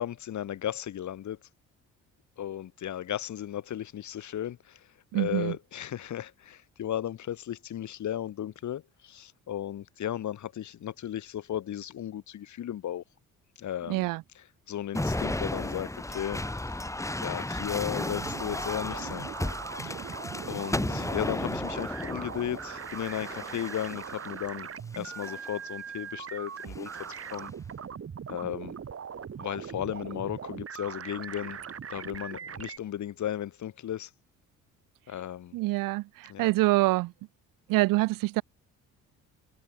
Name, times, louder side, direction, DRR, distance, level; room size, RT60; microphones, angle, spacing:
voice 1, 0.0-1.4 2.4-4.9 5.1-13.0 13.6-14.1 14.7-16.4 17.2-19.3 19.8-20.1 20.5-24.7 24.9-26.9 27.3-27.5 28.3-28.7 29.4-31.6 31.9-34.1 35.1-35.6 36.3-36.5, left 11 dB, 55° left, 2.2 m, -35 dB
voice 2, 5.1-5.5 13.9-14.2 35.5-37.1 37.7-38.4, right 19 dB, 70° right, 0.9 m, -26 dB
sound 1, 14.9-24.3 25.0-25.5 26.6-27.3, left 1 dB, 10° left, 2.3 m, -34 dB
sound 2, 18.0-32.8, right 7 dB, 40° right, 3.0 m, -40 dB
supercardioid pair, 70°, 34 cm